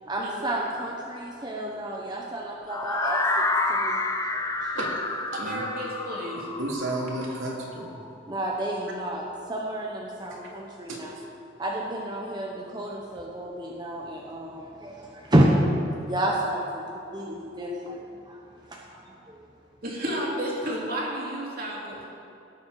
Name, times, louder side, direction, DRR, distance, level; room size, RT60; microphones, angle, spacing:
voice 1, 0.0-4.0 4.3-4.7 8.3-11.1 11.6-15.4 16.0-18.4 18.7-19.4, right 1 dB, 20° right, -2 dB, 0.9 m, -30 dB
sound 1, 2.7-8.6, left 2 dB, 15° left, 0.6 m, -29 dB
voice 2, 5.3-6.5 19.8-22.1, equal, 45° right, -3 dB, 2.5 m, -32 dB
voice 3, 6.6-8.0 10.3-10.4 10.9-11.3, right 1 dB, 80° right, -3 dB, 2.3 m, -33 dB
17.5 x 7.3 x 4.7 m, 2.7 s
head